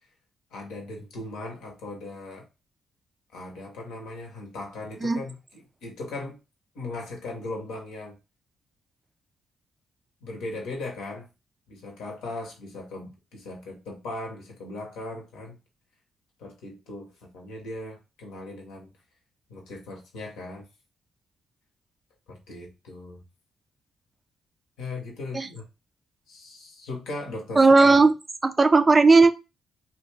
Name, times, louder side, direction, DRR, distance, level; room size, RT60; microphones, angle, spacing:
voice 1, 0.5-2.5 3.3-6.4 6.7-8.1 10.2-11.3 11.7-15.6 16.4-18.9 19.5-20.7 22.3-23.2 24.8-25.6 26.3-28.0, left 2 dB, 75° left, 0 dB, 0.8 m, -38 dB
voice 2, 27.6-28.1 28.4-29.3, right 3 dB, 30° right, 10 dB, 0.3 m, -16 dB
2.3 x 2.2 x 3.1 m, 0.28 s
hypercardioid pair, 45°, 0 cm